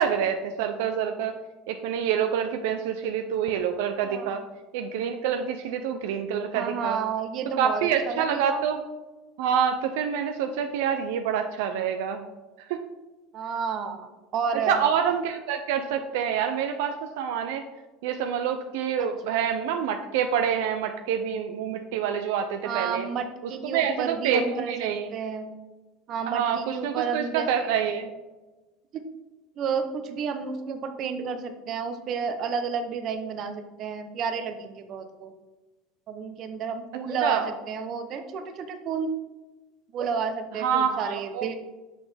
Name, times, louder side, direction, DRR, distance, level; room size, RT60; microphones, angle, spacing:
voice 1, 0.0-1.3 1.7-4.4 4.7-7.0 7.6-8.8 9.4-12.3 12.7-12.8 14.7-17.7 18.0-23.1 23.4-25.1 26.3-28.1 37.2-37.5 40.6-41.5, right 8 dB, 80° right, 6 dB, 0.4 m, -27 dB
voice 2, 4.0-4.4 6.5-8.6 13.3-14.1 14.3-14.8 19.0-19.1 22.6-25.5 26.1-27.5 28.9-29.0 29.6-35.3 36.1-39.1 39.9-41.6, right 6 dB, 50° right, 9 dB, 0.7 m, -31 dB
6.0 x 5.9 x 3.4 m, 1.1 s
supercardioid pair, 105°, 0 cm